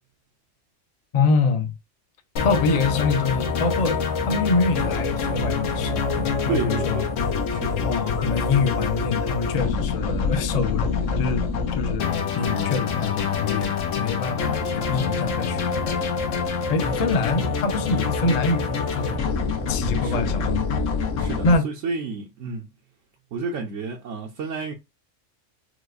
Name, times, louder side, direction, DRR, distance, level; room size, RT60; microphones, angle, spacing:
voice 1, 1.1-1.7 2.4-4.0 4.3-7.0 7.8-10.9 11.2-11.4 11.7-15.9 16.7-19.4 19.7-20.6 21.4-21.7, left 4 dB, 45° left, 0.6 m, -25 dB
sound 1, 2.4-21.6, left 5 dB, 80° left, 1.1 m, -26 dB
voice 2, 6.5-7.1 7.5-7.8 20.0-20.4 21.2-22.6 23.3-24.7, right 4 dB, 80° right, 1.0 m, -30 dB
4.7 x 2.1 x 2.4 m
omnidirectional pair, 1.3 m